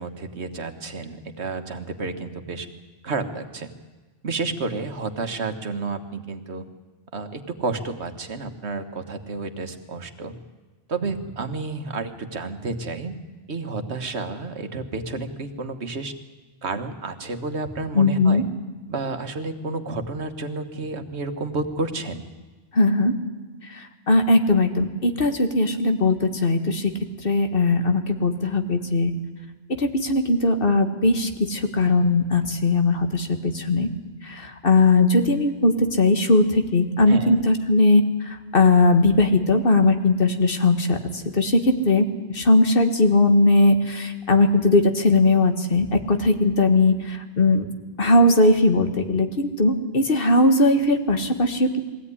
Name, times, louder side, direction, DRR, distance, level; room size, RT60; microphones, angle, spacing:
voice 1, 0.0-2.7 3.0-3.7 4.2-6.7 7.1-10.3 10.9-13.2 13.5-16.1 16.6-18.4 18.9-22.2 37.1-37.4, right 3 dB, 85° right, 8 dB, 1.8 m, -30 dB
voice 2, 17.9-18.4 22.7-23.1 23.7-26.9 27.2-29.1 29.8-33.9 34.2-47.7 48.0-51.8, left 2 dB, 55° left, 7 dB, 1.8 m, -19 dB
21.5 x 16.5 x 9.9 m, 1.3 s
omnidirectional pair, 1.1 m